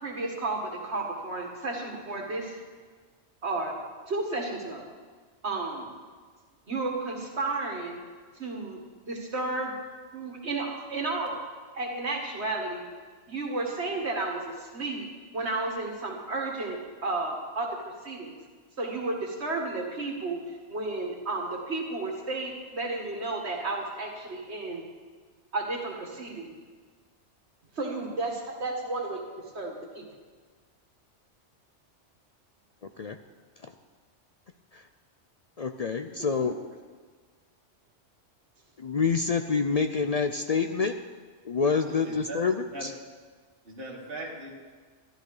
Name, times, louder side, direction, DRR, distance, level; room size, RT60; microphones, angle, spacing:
voice 1, 0.0-2.5 3.4-3.8 4.1-4.9 5.4-5.9 6.7-8.0 8.4-8.8 9.1-9.7 10.1-11.3 11.7-12.8 13.3-15.1 15.3-18.4 18.8-20.4 20.7-24.8 25.5-26.6 27.7-30.1 36.2-36.5, right 2 dB, 65° right, 0 dB, 2.2 m, -32 dB
voice 2, 35.6-36.5 38.8-40.9 41.4-42.9, left 5 dB, 50° left, 7 dB, 0.4 m, -27 dB
voice 3, 41.9-42.4 42.7-42.9 43.6-44.5, right 2 dB, 50° right, -3 dB, 2.0 m, -39 dB
13.0 x 12.0 x 4.9 m, 1.5 s
omnidirectional pair, 1.2 m